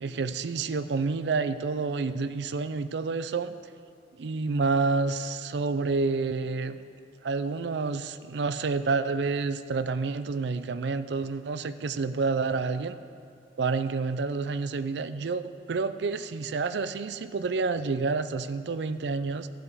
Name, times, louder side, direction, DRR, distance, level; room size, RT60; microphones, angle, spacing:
voice 1, 0.0-3.6 4.2-6.8 7.2-12.9 13.6-15.4 15.7-19.5, right 4 dB, 70° right, 12 dB, 0.4 m, -29 dB
14.5 x 7.8 x 4.8 m, 2.4 s
head